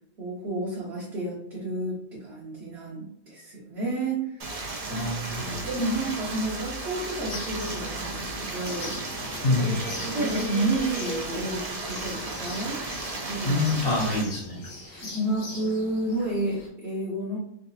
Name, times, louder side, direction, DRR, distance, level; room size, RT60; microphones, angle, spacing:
voice 1, 0.2-4.6 4.9-5.0 5.3-9.0 9.8-12.8 13.3-13.6 15.1-17.4, right 2 dB, 55° right, -5 dB, 1.0 m, -31 dB
Stream, 4.4-14.2, right 2 dB, 75° right, 0.3 m, -34 dB
voice 2, 4.9-5.6 9.4-9.8 13.4-14.6 14.9-15.1, left 2 dB, 50° left, -3 dB, 0.9 m, -26 dB
sound 1, 7.3-16.7, left 2 dB, 70° left, 1.3 m, -40 dB
3.7 x 2.3 x 2.7 m, 0.73 s
omnidirectional pair, 1.5 m